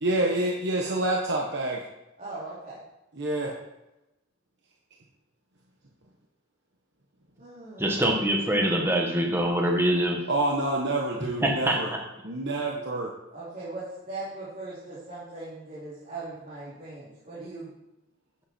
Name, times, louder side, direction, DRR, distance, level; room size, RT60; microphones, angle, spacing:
voice 1, 0.0-1.8 3.2-3.5 10.3-11.9 12.2-13.1, right 2 dB, 60° right, -1 dB, 1.2 m, -27 dB
voice 2, 2.2-2.8 7.4-7.9 13.3-17.7, right 2 dB, 45° right, -10 dB, 3.1 m, -39 dB
voice 3, 7.8-10.2 11.4-11.8, right 1 dB, 10° right, 0 dB, 1.7 m, -24 dB
9.8 x 8.6 x 4.4 m, 0.95 s
head